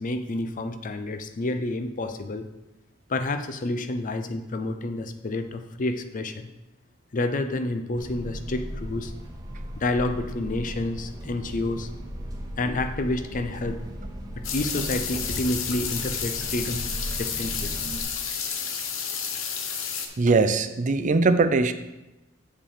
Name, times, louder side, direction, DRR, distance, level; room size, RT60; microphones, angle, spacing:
voice 1, 0.0-2.5 3.1-6.5 7.1-9.1 9.8-11.9 12.6-13.8 14.4-17.7, left 2 dB, 40° left, 8 dB, 0.5 m, -29 dB
sound 1, 7.9-18.0, equal, 20° right, 1.0 m, -37 dB
sound 2, 14.4-20.1, left 7 dB, 80° left, 0.8 m, -31 dB
voice 2, 20.2-21.7, right 3 dB, 40° right, 11 dB, 0.4 m, -21 dB
7.3 x 5.1 x 4.9 m, 0.99 s
head